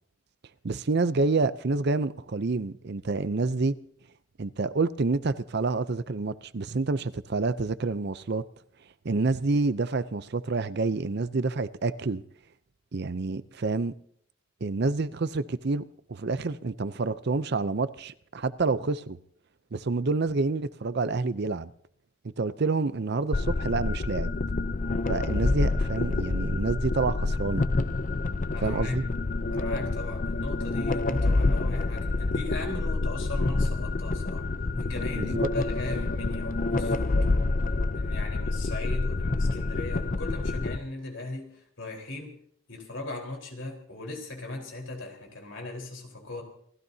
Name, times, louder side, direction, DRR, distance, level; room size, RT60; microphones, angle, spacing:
voice 1, 0.6-3.8 4.4-8.5 9.0-12.2 12.9-13.9 14.6-15.8 16.1-19.2 19.7-21.7 22.4-24.3 25.1-27.7 28.6-29.0 35.2-35.3, right 3 dB, 50° right, 0.6 m, -28 dB
sound 1, 23.3-40.8, left 3 dB, 40° left, 0.5 m, -27 dB
voice 2, 28.5-29.0 29.5-34.5 34.8-37.5 37.9-42.3 42.7-46.4, left 2 dB, 60° left, 4.2 m, -38 dB
28.5 x 15.0 x 2.8 m
head